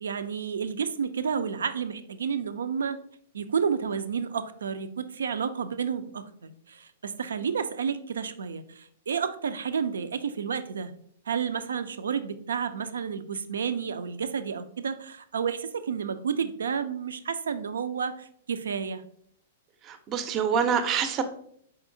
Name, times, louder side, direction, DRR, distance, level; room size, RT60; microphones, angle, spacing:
voice 1, 0.0-3.0 3.3-10.9 11.3-19.0, right 6 dB, 90° right, 11 dB, 0.3 m, -31 dB
voice 2, 19.8-21.2, right 7 dB, 30° right, 9 dB, 0.5 m, -26 dB
4.1 x 3.8 x 2.6 m, 0.66 s
hypercardioid pair, 130°, 0 cm